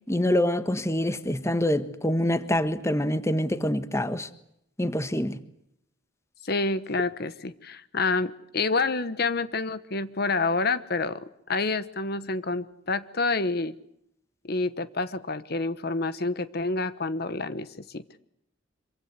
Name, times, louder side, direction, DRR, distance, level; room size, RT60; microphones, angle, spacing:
voice 1, 0.1-4.3 4.8-5.4, left 1 dB, 15° left, 1.4 m, -25 dB
voice 2, 6.4-13.7 14.4-18.0, left 3 dB, 55° left, 1.2 m, -28 dB
26.0 x 24.0 x 8.2 m
head